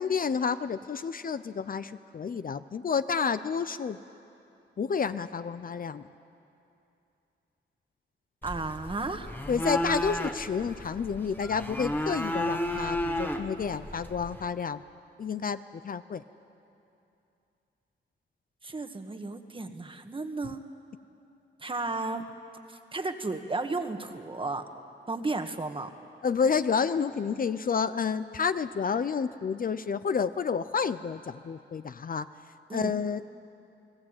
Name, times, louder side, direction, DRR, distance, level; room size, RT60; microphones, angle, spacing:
voice 1, 0.0-4.0 4.8-6.0 9.5-14.8 15.2-16.2 26.2-32.3 32.7-33.3, left 6 dB, 45° left, 12 dB, 0.6 m, -30 dB
sound 1, 8.4-14.4, left 1 dB, 10° left, 1.5 m, -33 dB
voice 2, 8.4-9.3 18.6-20.6 21.6-22.2 22.7-24.7 25.1-25.9 32.7-32.9, right 3 dB, 25° right, 7 dB, 1.6 m, -33 dB
29.5 x 19.0 x 8.8 m, 2.8 s
cardioid pair, 100°, 20 cm